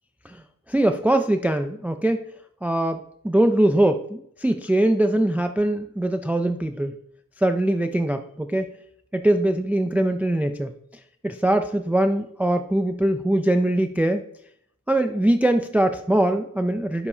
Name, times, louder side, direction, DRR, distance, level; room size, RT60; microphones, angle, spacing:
voice 1, 0.2-2.2 2.6-7.0 7.4-8.7 9.1-10.7 11.2-14.2 14.9-17.1, right 1 dB, 5° right, 8 dB, 0.4 m, -22 dB
11.0 x 6.7 x 2.8 m, 0.72 s
wide cardioid pair, 60°, 34 cm